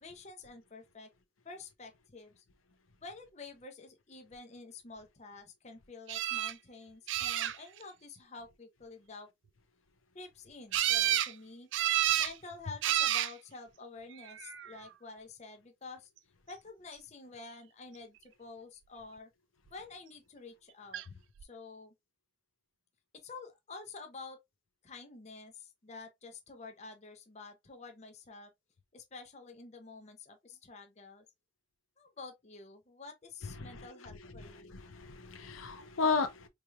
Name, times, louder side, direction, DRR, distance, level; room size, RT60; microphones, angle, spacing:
voice 1, 0.0-1.1 1.4-2.4 3.0-9.3 10.1-11.7 12.2-16.1 16.5-19.3 19.7-21.0 21.4-21.9 23.1-24.4 24.8-28.5 28.9-31.3 32.0-34.8, left 3 dB, 35° left, 0.6 m, -49 dB
sound 1, 6.1-6.5 7.1-7.8 10.7-11.3 11.7-12.3 12.8-13.3 14.2-14.7 20.9-21.0 21.4-21.5, right 13 dB, 65° right, 0.3 m, -30 dB
voice 2, 33.4-36.5, left 4 dB, 90° left, 0.7 m, -35 dB
4.3 x 3.2 x 2.3 m
head